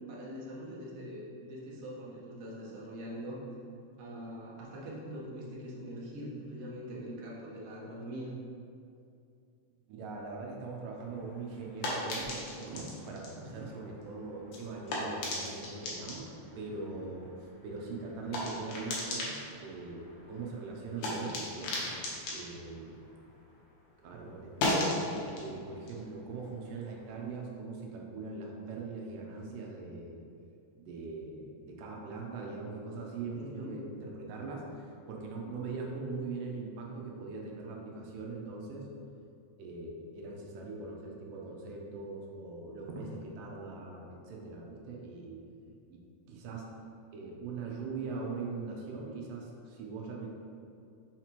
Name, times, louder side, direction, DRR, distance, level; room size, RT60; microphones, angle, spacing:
voice 1, 0.0-3.4 4.0-8.3 13.4-13.7 33.3-33.8, equal, 60° right, -6 dB, 1.8 m, -43 dB
voice 2, 9.9-16.3 16.6-21.8 22.3-23.0 24.0-30.2 30.8-38.9 39.6-45.4 45.9-46.0 46.3-46.7 47.1-50.3, right 3 dB, 85° right, -1 dB, 2.4 m, -41 dB
sound 1, 11.0-23.8 24.1-27.3, left 1 dB, 70° left, 2.3 m, -38 dB
5.8 x 5.5 x 2.9 m, 2.5 s
omnidirectional pair, 3.7 m